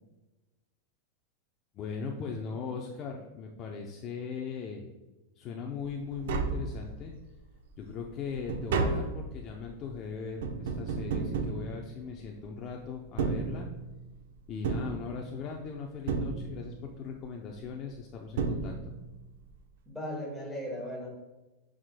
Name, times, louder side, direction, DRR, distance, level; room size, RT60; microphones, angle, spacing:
voice 1, 1.7-4.9 5.4-7.1 7.8-13.7 14.5-18.9, left 5 dB, 30° left, 0 dB, 0.6 m, -39 dB
Tap, 5.8-5.9 6.1-7.2 7.7-12.4 13.0-14.1 14.6-15.6 16.1-16.9 17.9-18.0 18.4-19.2 19.5-19.6, right 4 dB, 80° right, 0.8 m, -33 dB
voice 2, 19.9-21.1, equal, ahead, -4 dB, 1.8 m, -37 dB
9.7 x 5.0 x 2.2 m, 1.1 s
supercardioid pair, 160°, 0 cm